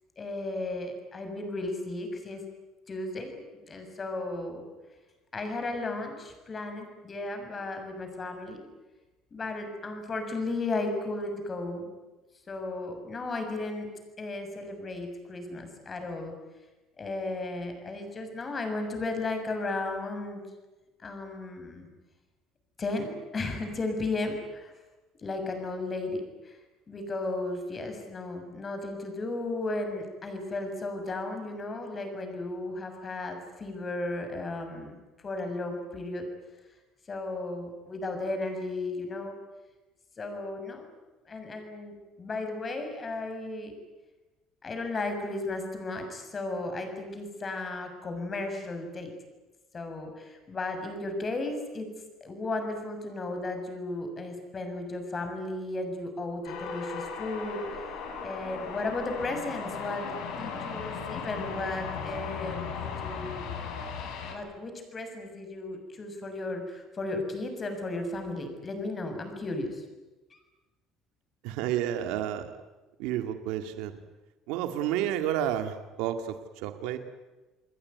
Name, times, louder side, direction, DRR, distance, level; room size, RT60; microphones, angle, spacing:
voice 1, 0.2-2.4 2.9-4.6 5.3-8.7 9.3-11.9 12.5-13.9 14.2-16.4 17.0-20.5 21.0-21.9 22.8-24.7 25.2-26.6 26.9-36.3 37.1-39.4 40.2-40.9 41.2-43.7 44.6-49.1 49.7-51.9 52.2-57.6 58.2-63.5 64.3-69.8 70.3-70.4, left 2 dB, 25° left, 6 dB, 6.7 m, -35 dB
sound 1, 56.4-64.4, left 5 dB, 70° left, 7.3 m, -37 dB
voice 2, 71.4-72.5 73.0-73.9 74.5-77.0, right 11 dB, 85° right, 7 dB, 2.1 m, -30 dB
29.0 x 21.5 x 9.5 m, 1.1 s
cardioid pair, 140°, 0 cm